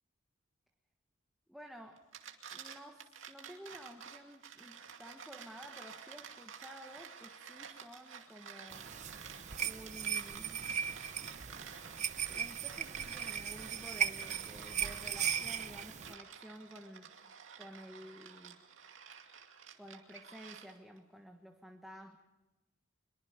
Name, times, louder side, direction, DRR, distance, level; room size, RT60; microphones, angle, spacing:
voice 1, 1.5-2.1 2.5-8.9 9.6-10.8 12.3-17.1 17.6-18.6 19.8-22.2, equal, ahead, 2 dB, 1.4 m, -52 dB
sound 1, 1.9-21.0, right 7 dB, 75° right, 2.4 m, -51 dB
sound 2, 8.7-16.1, right 8 dB, 35° right, 0.8 m, -38 dB
24.0 x 22.5 x 5.2 m, 1.1 s
head